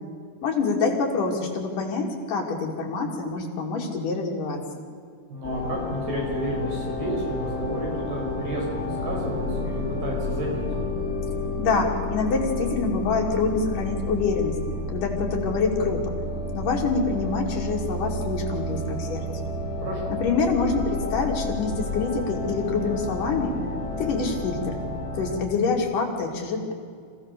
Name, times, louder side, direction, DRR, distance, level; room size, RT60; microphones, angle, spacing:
voice 1, 0.4-4.6 11.6-14.6 14.9-16.0 16.5-19.2 20.1-23.5 24.0-24.8 25.2-26.7, left 4 dB, 65° left, 0 dB, 3.9 m, -26 dB
voice 2, 5.3-10.6 19.8-20.2, right 1 dB, 80° right, -2 dB, 7.3 m, -31 dB
sound 1, 5.4-25.4, left 2 dB, 25° left, 5.1 m, -31 dB
26.0 x 16.5 x 6.8 m, 2.2 s
omnidirectional pair, 4.2 m